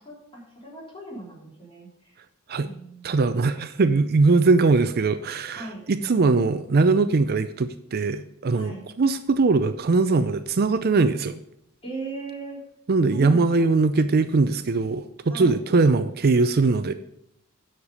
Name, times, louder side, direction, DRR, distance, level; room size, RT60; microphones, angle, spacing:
voice 1, 0.0-2.2 2.6-3.3 5.6-5.8 8.5-8.9 11.8-12.6 13.1-13.7 15.3-15.6, right 2 dB, 25° left, -4 dB, 3.6 m, -38 dB
voice 2, 3.0-11.4 12.9-16.9, right 3 dB, 45° right, 11 dB, 0.5 m, -21 dB
10.0 x 6.6 x 5.4 m, 0.76 s
head